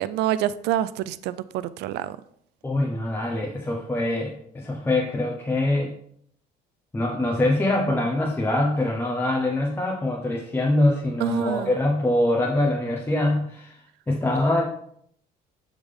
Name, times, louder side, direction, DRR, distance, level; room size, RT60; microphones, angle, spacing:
voice 1, 0.0-2.2 11.2-11.7, right 12 dB, 85° right, 16 dB, 0.4 m, -27 dB
voice 2, 2.6-5.9 6.9-13.8 14.1-14.6, left 1 dB, 15° left, -1 dB, 1.0 m, -24 dB
10.5 x 3.7 x 3.5 m, 0.67 s
cardioid pair, 110°, 17 cm